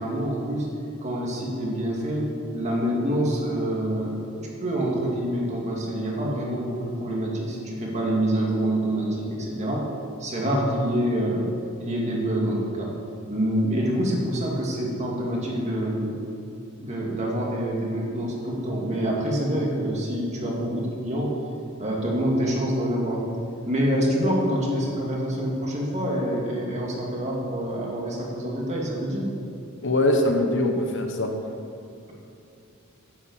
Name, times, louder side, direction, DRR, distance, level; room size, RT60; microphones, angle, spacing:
voice 1, 0.0-9.9 10.2-11.4 11.8-12.9 13.3-16.1 16.8-21.4 21.8-23.2 23.6-29.3, equal, 30° right, -2 dB, 2.2 m, -26 dB
voice 2, 29.8-31.3, left 1 dB, 55° left, 3 dB, 1.2 m, -22 dB
10.5 x 8.1 x 8.0 m, 2.7 s
head